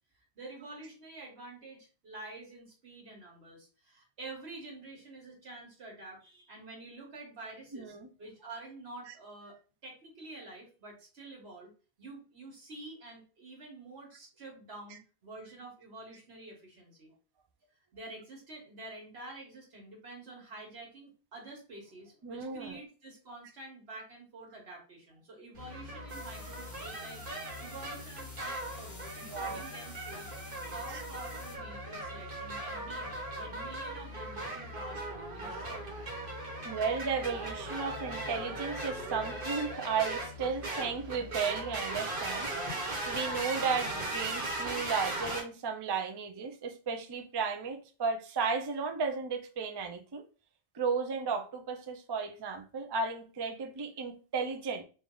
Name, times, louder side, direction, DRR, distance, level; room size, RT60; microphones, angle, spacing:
voice 1, 0.1-9.5 9.8-11.7 12.0-17.1 17.9-27.2 27.6-30.3 30.6-35.0 35.3-36.2, right 2 dB, 85° right, 1.6 m, -48 dB
voice 2, 7.7-8.1 9.1-9.2 22.2-22.8 29.2-29.6 30.9-31.0 36.6-42.5 43.1-50.2 50.7-54.8, right 5 dB, 35° right, 0.4 m, -34 dB
sound 1, 25.5-45.4, right 1 dB, 60° right, 1.3 m, -38 dB
sound 2, 26.1-31.6, left 1 dB, 15° left, 1.1 m, -51 dB
3.4 x 2.6 x 3.7 m
omnidirectional pair, 1.1 m